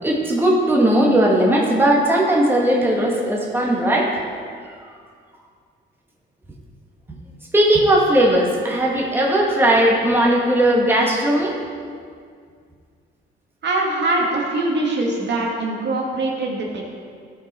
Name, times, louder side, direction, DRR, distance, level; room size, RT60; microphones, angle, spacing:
voice 1, 0.0-4.1 7.5-11.6, right 1 dB, 10° right, -3 dB, 1.7 m, -17 dB
voice 2, 13.6-16.8, right 2 dB, 60° right, -2 dB, 1.9 m, -22 dB
13.5 x 5.7 x 4.3 m, 2.1 s
cardioid pair, 90°, 20 cm